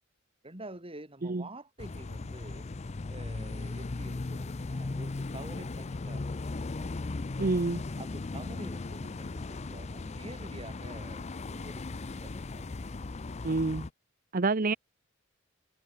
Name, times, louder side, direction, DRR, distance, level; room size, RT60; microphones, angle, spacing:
voice 1, 0.4-2.7 3.1-6.4 6.7-6.9 8.0-12.7 14.6-14.8, right 2 dB, 30° right, 5.8 m, -48 dB
sound 1, 1.8-13.9, left 3 dB, 35° left, 0.5 m, -37 dB
voice 2, 7.4-7.8 13.4-13.9 14.3-14.8, right 3 dB, 45° right, 0.8 m, -27 dB
head